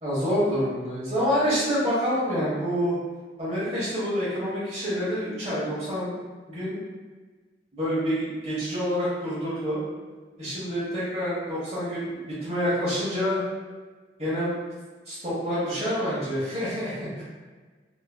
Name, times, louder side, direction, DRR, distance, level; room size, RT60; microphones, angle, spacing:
voice 1, 0.0-2.9 3.4-6.1 6.5-6.8 7.7-9.8 10.4-13.4 14.2-14.5 15.1-17.2, equal, 35° right, -9 dB, 1.3 m, -27 dB
3.6 x 3.1 x 2.2 m, 1.4 s
head